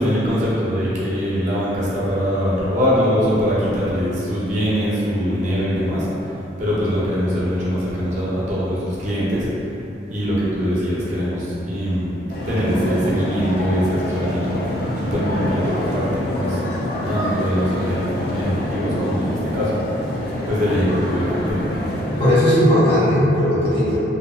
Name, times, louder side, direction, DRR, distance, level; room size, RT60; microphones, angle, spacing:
voice 1, 0.0-9.5 10.1-12.2 12.5-14.6 15.0-16.6 17.1-19.8 20.5-21.7, equal, 45° right, -8 dB, 0.6 m, -22 dB
sound 1, 12.3-22.3, left 1 dB, 60° left, 0.4 m, -26 dB
voice 2, 22.2-24.0, equal, 30° left, -11 dB, 0.7 m, -16 dB
2.6 x 2.5 x 2.3 m, 3.0 s
head